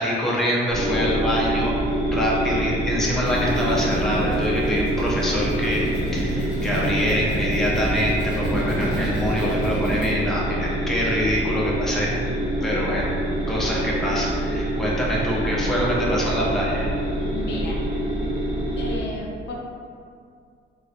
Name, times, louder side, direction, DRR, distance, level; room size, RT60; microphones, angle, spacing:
voice 1, 0.0-1.7 2.1-5.8 6.1-12.1 12.6-13.2 13.5-16.9, equal, ahead, -5 dB, 0.5 m, -25 dB
sound 1, 0.7-19.0, right 1 dB, 80° right, 0.8 m, -26 dB
sound 2, 3.0-10.1, equal, 50° right, 1.0 m, -31 dB
voice 2, 17.3-17.8 18.8-19.5, left 2 dB, 60° left, -3 dB, 0.5 m, -33 dB
2.3 x 2.1 x 2.6 m, 2.3 s
cardioid pair, 90°, 20 cm